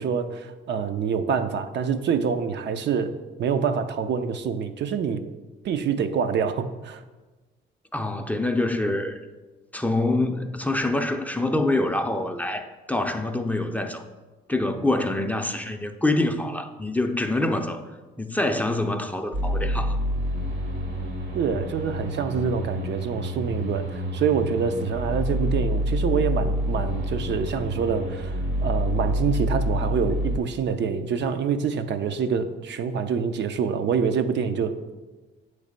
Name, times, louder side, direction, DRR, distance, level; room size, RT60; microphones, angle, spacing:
voice 1, 0.0-5.3 5.6-7.0 21.3-34.9, right 6 dB, 65° right, 0.5 m, -26 dB
voice 2, 7.9-9.2 9.7-14.0 14.5-17.8 18.2-20.0, left 2 dB, 10° left, 0.4 m, -25 dB
sound 1, 19.3-30.4, equal, 90° right, 1.9 m, -27 dB
7.9 x 3.2 x 5.1 m
cardioid pair, 90°, 20 cm